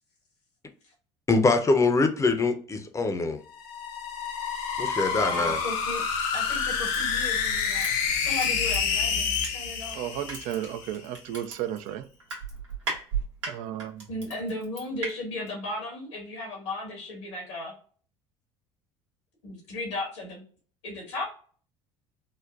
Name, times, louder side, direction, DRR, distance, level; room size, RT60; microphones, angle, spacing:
voice 1, 1.3-3.4 4.8-5.6, left 3 dB, 20° left, 0.6 m, -23 dB
sound 1, 3.5-10.9, left 6 dB, 65° left, 0.7 m, -28 dB
voice 2, 5.1-6.0 6.3-7.9 8.2-10.0 14.1-17.7 19.4-20.4 20.8-21.3, left 2 dB, 85° left, 1.4 m, -35 dB
Crushing, 6.9-9.9 10.2-15.1 15.5-15.6, right 5 dB, 85° right, 1.0 m, -35 dB
voice 3, 9.9-12.0 13.4-14.1, right 11 dB, 65° right, 0.4 m, -33 dB
3.9 x 2.1 x 2.4 m
hypercardioid pair, 70°, 14 cm